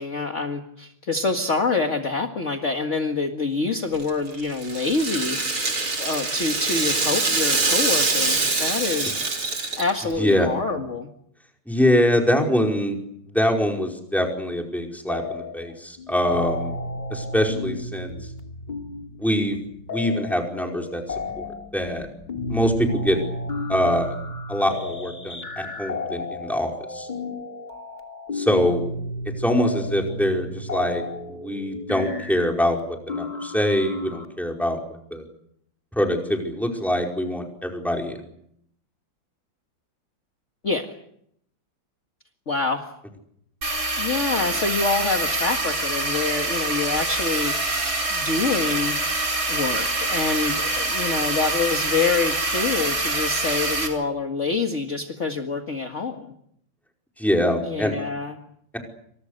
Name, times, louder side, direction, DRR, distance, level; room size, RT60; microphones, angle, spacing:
voice 1, 0.0-5.4 6.0-9.2 9.8-11.1 40.6-40.9 42.5-42.9 44.0-47.5 48.1-49.0 49.5-56.3 57.6-58.4, left 4 dB, 40° left, 4 dB, 2.1 m, -26 dB
Rattle (instrument), 3.9-10.2, right 3 dB, 85° right, 5.0 m, -24 dB
voice 2, 10.2-10.5 11.7-13.0 13.3-16.7 17.1-18.1 19.2-19.6 19.9-21.0 21.4-21.5 21.7-22.1 22.5-23.2 23.7-24.1 24.5-27.1 28.3-28.9 29.4-34.8 35.1-35.2 35.9-38.2 57.2-58.0, equal, ahead, 1 dB, 4.9 m, -24 dB
sound 1, 15.1-15.7 16.0-34.3, left 2 dB, 20° left, 2.9 m, -33 dB
sound 2, 43.6-53.9, right 2 dB, 45° right, 5.0 m, -25 dB
28.5 x 26.5 x 6.7 m, 0.73 s
omnidirectional pair, 2.1 m